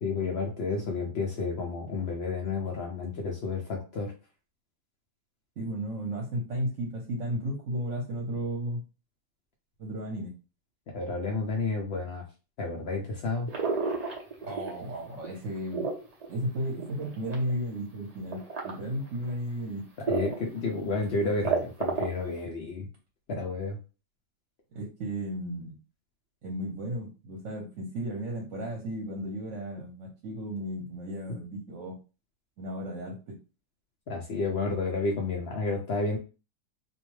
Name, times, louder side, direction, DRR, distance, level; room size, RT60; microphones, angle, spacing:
voice 1, 0.0-4.1 10.9-12.2 12.6-13.5 20.1-22.9 23.3-23.8 34.1-36.2, left 3 dB, 80° left, 0 dB, 0.5 m, -31 dB
voice 2, 5.6-8.8 9.8-10.3 14.4-15.9 16.3-19.8 24.7-25.8 26.4-32.0 32.6-33.4, equal, 60° right, 0 dB, 1.0 m, -34 dB
sound 1, 13.5-14.9 15.2-17.5 18.3-18.7 19.3-19.4 20.1-20.5 20.8-20.9 21.2-22.3, right 5 dB, 85° right, 0.3 m, -30 dB
2.6 x 2.2 x 3.1 m, 0.31 s
omnidirectional pair, 1.7 m